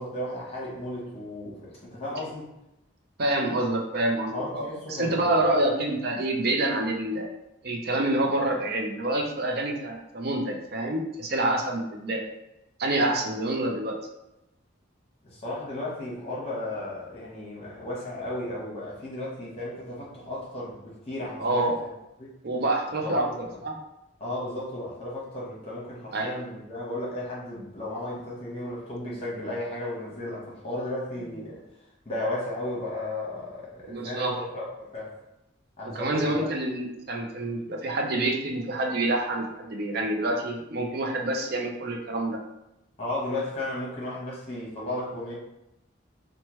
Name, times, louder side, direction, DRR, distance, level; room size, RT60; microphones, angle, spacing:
voice 1, 0.0-2.5 4.3-5.5 15.2-21.9 22.2-22.3 23.0-23.6 24.2-31.6 32.0-35.1 35.8-36.5 43.0-45.3, left 1 dB, 30° left, -6 dB, 1.0 m, -34 dB
voice 2, 3.2-4.6 4.9-7.3 7.6-12.2 12.8-14.0 21.4-21.8 22.4-23.3 23.6-23.8 26.1-26.3 33.9-34.3 35.8-42.4, right 1 dB, 50° right, 1 dB, 0.5 m, -27 dB
3.0 x 2.1 x 3.0 m, 0.89 s
head